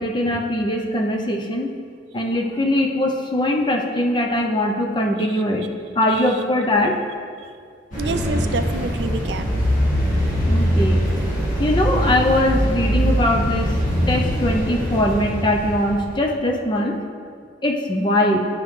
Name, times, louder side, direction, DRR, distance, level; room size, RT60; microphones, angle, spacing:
voice 1, 0.0-1.7 2.1-5.6 6.0-7.0 10.5-11.0 11.6-13.8 14.1-17.0 17.6-18.4, left 1 dB, 25° left, 2 dB, 0.5 m, -21 dB
sound 1, 7.9-16.2, equal, 45° left, 1.9 m, -22 dB
voice 2, 8.0-9.6, right 3 dB, 70° right, 9 dB, 0.4 m, -28 dB
9.8 x 5.1 x 3.2 m, 2.2 s
head